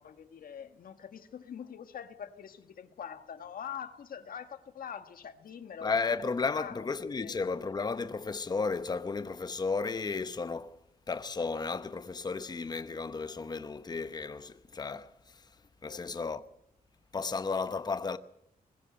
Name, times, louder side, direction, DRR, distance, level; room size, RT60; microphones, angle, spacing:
voice 1, 0.0-5.9 6.5-6.9 7.2-7.3 15.9-16.3, left 8 dB, 75° left, 1.6 m, -44 dB
voice 2, 5.8-10.8 11.1-15.6 15.8-16.4 17.1-18.2, left 4 dB, 25° left, 0.9 m, -34 dB
21.0 x 15.5 x 7.9 m
wide cardioid pair, 145°, 15 cm